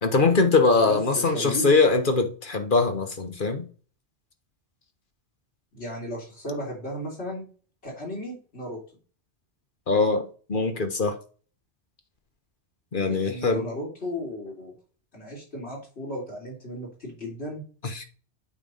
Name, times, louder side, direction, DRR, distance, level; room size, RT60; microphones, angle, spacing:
voice 1, 0.0-3.7 9.9-11.2 12.9-13.7 17.8-18.0, left 3 dB, 50° left, 1.3 m, -22 dB
voice 2, 0.8-1.7 5.7-7.5 7.8-8.8 13.0-14.7 15.1-17.6, left 1 dB, 70° left, 3.3 m, -35 dB
8.8 x 3.5 x 5.5 m
omnidirectional pair, 1.1 m